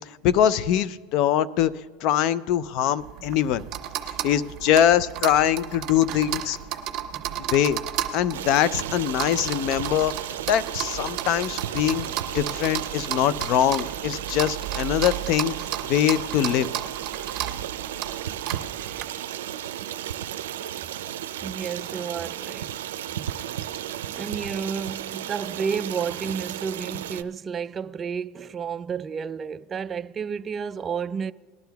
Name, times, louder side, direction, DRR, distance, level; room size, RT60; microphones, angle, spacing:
voice 1, 0.2-1.7 2.0-3.6 4.2-6.6 7.5-7.8 8.1-10.1 10.5-15.5 15.9-16.7, left 10 dB, 55° left, 0.4 m, -23 dB
sound 1, 3.0-19.0, right 11 dB, 45° right, 1.4 m, -34 dB
Stream, 8.3-27.2, right 11 dB, 90° right, 0.4 m, -34 dB
voice 2, 21.4-22.7 24.1-31.3, right 6 dB, 25° right, 0.3 m, -31 dB
19.5 x 11.5 x 2.3 m
supercardioid pair, 125°, 0 cm